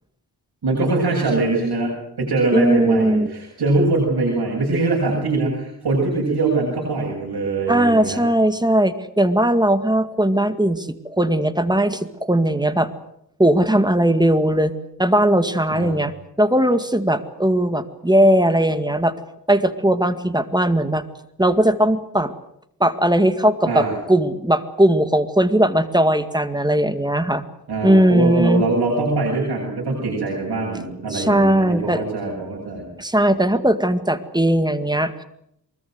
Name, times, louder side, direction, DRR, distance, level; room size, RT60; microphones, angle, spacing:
voice 1, 0.6-8.2 15.7-16.0 23.7-23.9 27.7-32.9, right 3 dB, 80° right, -1 dB, 7.9 m, -22 dB
voice 2, 2.5-3.3 7.7-12.9 13.4-16.1 16.4-19.2 19.5-21.0 21.4-22.3 22.8-27.4 27.8-28.6 31.1-32.0 33.0-35.2, right 1 dB, 10° right, 11 dB, 2.0 m, -18 dB
23.5 x 21.5 x 8.0 m, 0.77 s
cardioid pair, 75°, 38 cm